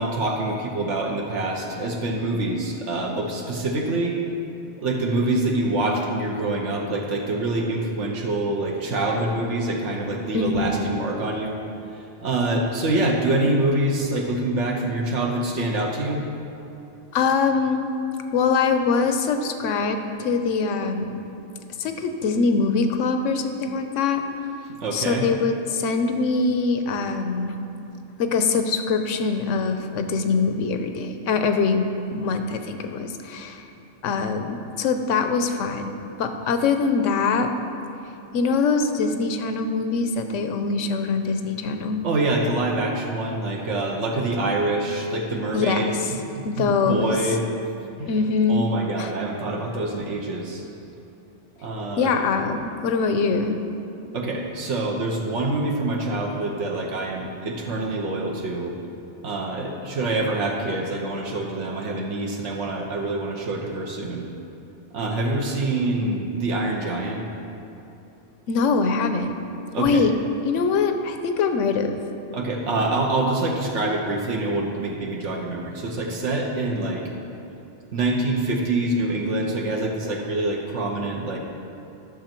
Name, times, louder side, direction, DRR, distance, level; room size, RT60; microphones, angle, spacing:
voice 1, 0.0-4.2 4.8-11.6 11.9-16.2 24.7-25.3 42.0-46.0 46.3-47.5 48.0-48.1 48.5-50.6 51.6-52.2 54.1-58.7 59.2-64.3 64.9-67.2 69.7-70.1 72.3-77.1 77.9-81.4, right 2 dB, 70° right, 0 dB, 1.2 m, -25 dB
voice 2, 10.3-10.8 17.1-17.8 18.3-21.2 21.8-24.2 24.9-27.6 28.2-33.7 34.0-35.9 36.2-37.5 38.3-42.0 45.5-45.9 46.4-47.1 48.1-48.7 49.0-49.1 52.0-53.6 68.5-69.3 69.8-70.1 70.4-72.0, left 4 dB, 80° left, 7 dB, 1.0 m, -23 dB
10.5 x 6.5 x 4.4 m, 2.9 s
omnidirectional pair, 1.3 m